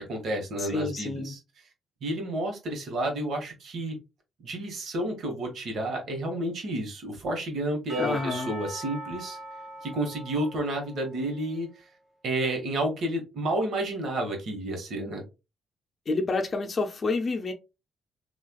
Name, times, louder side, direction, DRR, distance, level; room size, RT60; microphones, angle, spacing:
voice 1, 0.0-1.4 2.0-4.0 4.4-9.4 9.8-11.7 12.2-15.2, right 1 dB, 65° right, 1.2 m, -30 dB
voice 2, 0.6-1.3 8.0-8.5 16.1-17.5, left 3 dB, 35° left, 0.5 m, -28 dB
Percussion / Church bell, 7.9-11.5, right 1 dB, 25° right, 1.1 m, -41 dB
3.1 x 2.4 x 2.2 m
cardioid pair, 90°, 0 cm